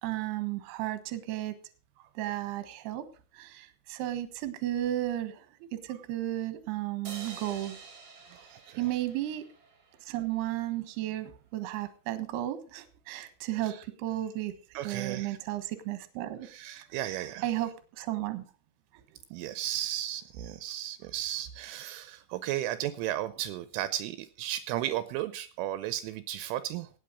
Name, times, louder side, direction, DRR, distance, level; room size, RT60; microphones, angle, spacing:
voice 1, 0.0-1.5 2.2-3.0 3.4-3.5 3.9-5.3 5.9-7.8 8.8-9.4 10.1-13.7 14.0-14.5 14.8-16.5 17.4-17.7 18.0-18.4, right 14 dB, 65° right, 11 dB, 3.0 m, -33 dB
sound 1, 7.0-10.4, right 5 dB, 40° right, 1.8 m, -48 dB
voice 2, 8.3-9.0 13.6-13.8 14.7-15.4 16.4-17.6 19.3-26.9, right 13 dB, 80° right, 13 dB, 3.2 m, -35 dB
17.5 x 8.4 x 5.1 m, 0.36 s
omnidirectional pair, 5.8 m